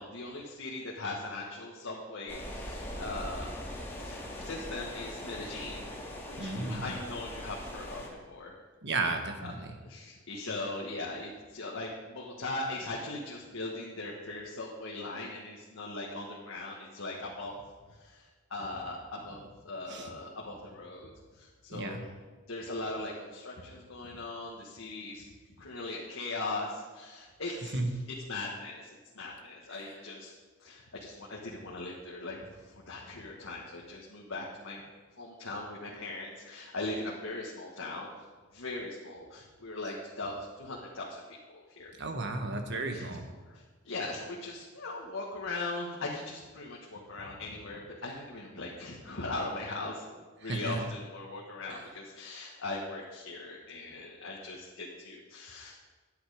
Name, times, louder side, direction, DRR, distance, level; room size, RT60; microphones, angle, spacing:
voice 1, 0.0-3.5 3.9-5.9 6.3-8.5 9.4-17.5 17.9-22.1 22.5-25.2 25.6-28.0 28.3-30.3 30.6-34.8 35.2-38.1 38.5-41.9 42.9-43.0 43.5-55.7, left 2 dB, 75° left, -3 dB, 1.5 m, -40 dB
sound 1, 2.3-8.1, left 1 dB, 10° left, 2.0 m, -41 dB
voice 2, 6.4-6.9 8.8-9.6 19.9-20.1 21.7-22.0 27.7-27.9 42.0-43.2 50.4-50.8 51.7-51.8, right 2 dB, 60° right, 5 dB, 1.3 m, -33 dB
10.5 x 8.9 x 5.1 m, 1.4 s
head